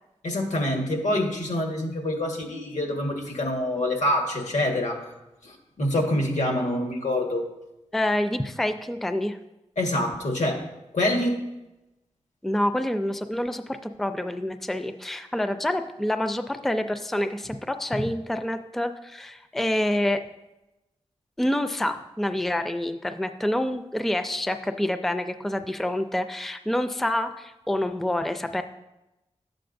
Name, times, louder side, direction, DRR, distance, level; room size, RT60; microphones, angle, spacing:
voice 1, 0.2-5.1 5.4-7.5 9.8-10.6 10.9-11.4, left 1 dB, 85° left, 1 dB, 1.6 m, -26 dB
voice 2, 7.9-9.4 12.4-20.2 21.4-28.6, left 1 dB, ahead, 9 dB, 0.4 m, -27 dB
12.0 x 7.7 x 2.6 m, 0.96 s
wide cardioid pair, 125°, 12 cm